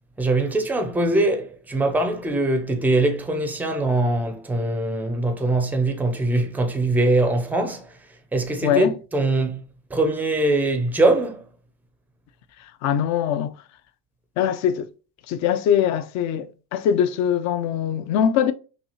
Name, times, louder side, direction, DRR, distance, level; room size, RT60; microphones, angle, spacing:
voice 1, 0.2-7.8 8.3-9.6 9.9-11.4, right 2 dB, 5° right, 0.5 m, -22 dB
voice 2, 8.6-8.9 12.8-13.5 14.4-14.9 15.3-18.5, left 9 dB, 45° left, 0.5 m, -22 dB
5.8 x 2.3 x 2.8 m
cardioid pair, 140°, 38 cm